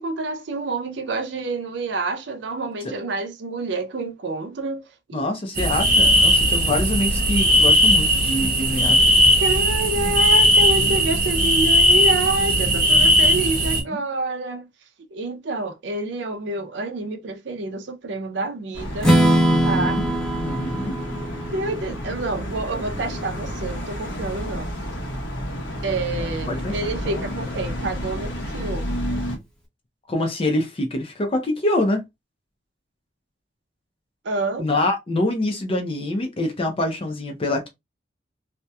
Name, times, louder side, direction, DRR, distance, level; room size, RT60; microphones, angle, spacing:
voice 1, 0.0-4.8 5.1-5.2 9.4-14.7 15.1-19.2 19.6-20.0 21.5-24.7 25.8-28.8 34.2-34.7, right 2 dB, 70° right, 0.5 m, -28 dB
voice 2, 5.1-9.0 13.3-13.4 13.9-14.0 19.5-20.0 20.4-20.9 26.2-26.8 27.1-27.2 30.1-32.0 34.6-37.7, left 1 dB, 30° left, 0.5 m, -25 dB
sound 1, 5.6-13.8, equal, 50° right, 0.9 m, -17 dB
sound 2, 18.7-29.4, equal, 80° left, 0.8 m, -31 dB
Strum, 19.0-23.0, equal, 5° left, 0.8 m, -22 dB
2.7 x 2.1 x 2.2 m
head